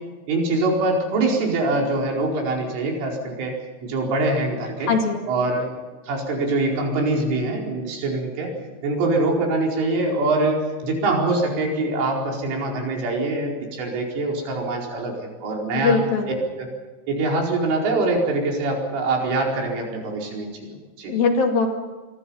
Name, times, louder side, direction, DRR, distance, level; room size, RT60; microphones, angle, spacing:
voice 1, 0.3-3.6 3.8-4.9 5.3-5.8 6.1-8.5 8.8-16.0 16.6-16.7 17.1-21.1, right 2 dB, 90° right, 0 dB, 7.3 m, -24 dB
voice 2, 4.8-5.2 15.7-16.4 21.1-21.7, left 4 dB, 55° left, 3 dB, 3.9 m, -21 dB
26.5 x 24.5 x 5.7 m, 1.3 s
omnidirectional pair, 5.5 m